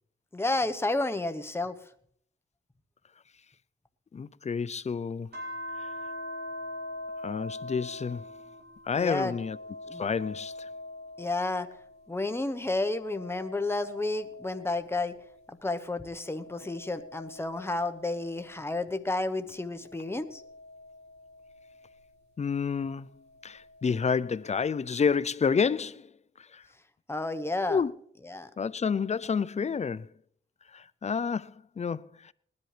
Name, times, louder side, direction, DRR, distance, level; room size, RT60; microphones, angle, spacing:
voice 1, 0.3-1.8 9.0-9.3 9.9-10.0 11.2-11.7 12.1-15.1 15.6-20.4 27.1-27.8 28.3-28.5, left 2 dB, 10° left, 1.0 m, -31 dB
voice 2, 4.1-5.4 5.8-5.9 7.2-8.2 8.8-9.6 9.9-10.7 22.4-23.1 23.4-26.1 26.4-26.6 27.7-27.9 28.6-30.1 30.7-32.3, left 6 dB, 35° left, 0.5 m, -29 dB
sound 1, 5.3-12.0 12.5-15.4 16.0-18.8 19.5-22.0 23.3-24.4, left 1 dB, 55° right, 5.2 m, -44 dB
20.0 x 10.5 x 3.3 m
cardioid pair, 65°, 21 cm